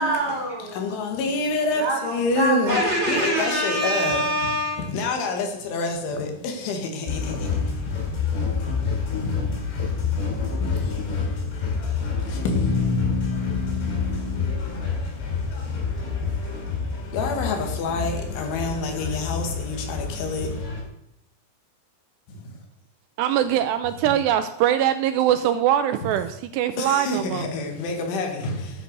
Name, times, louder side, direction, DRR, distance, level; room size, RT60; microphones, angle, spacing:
voice 1, 0.0-0.8 1.7-4.8, right 1 dB, 15° right, 4.4 m, -25 dB
voice 2, 0.8-2.8 3.1-4.2 4.8-7.5 9.2-9.3 12.3-14.5 17.1-20.5 26.8-28.7, left 3 dB, 85° left, 4.4 m, -27 dB
sound 1, 7.1-20.8, left 5 dB, 70° left, 5.7 m, -28 dB
voice 3, 23.2-27.5, right 11 dB, 80° right, 2.6 m, -22 dB
12.0 x 9.0 x 6.7 m
omnidirectional pair, 5.3 m